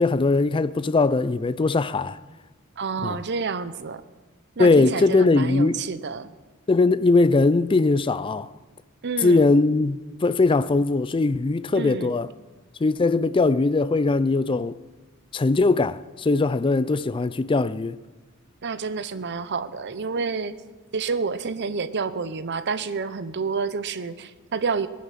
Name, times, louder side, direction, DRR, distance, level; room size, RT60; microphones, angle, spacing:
voice 1, 0.0-2.2 3.0-3.2 4.6-5.8 6.7-8.5 9.2-12.3 12.8-14.8 15.3-18.0, left 3 dB, 25° left, 0.4 m, -20 dB
voice 2, 2.8-4.0 4.6-6.3 9.0-9.4 11.7-12.1 18.6-20.6 20.9-24.9, right 5 dB, 55° right, 0.7 m, -29 dB
20.0 x 9.7 x 5.8 m
head